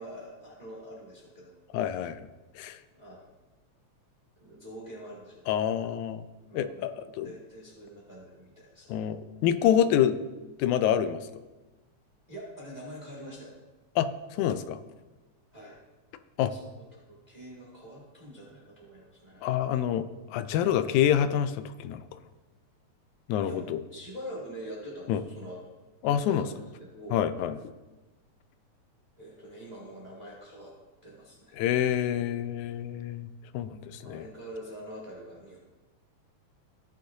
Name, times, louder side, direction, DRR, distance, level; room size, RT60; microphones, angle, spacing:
voice 1, 0.0-1.5 2.9-3.2 4.4-5.7 6.5-6.8 7.2-9.0 12.3-13.5 15.5-15.8 16.4-19.5 23.4-23.6 23.9-25.6 26.0-27.2 29.2-30.7 31.0-31.6 34.0-35.6, equal, 15° right, -4 dB, 1.9 m, -45 dB
voice 2, 1.7-2.3 2.6-2.8 5.5-6.3 6.5-7.3 8.9-10.2 10.6-11.2 14.0-14.1 14.3-14.8 16.4-16.5 19.4-20.0 20.3-22.1 23.3-23.8 25.1-25.2 26.0-26.4 27.1-27.6 31.6-33.3 33.5-34.2, left 10 dB, 90° left, 11 dB, 2.0 m, -27 dB
18.0 x 6.5 x 2.8 m, 1.2 s
omnidirectional pair, 3.3 m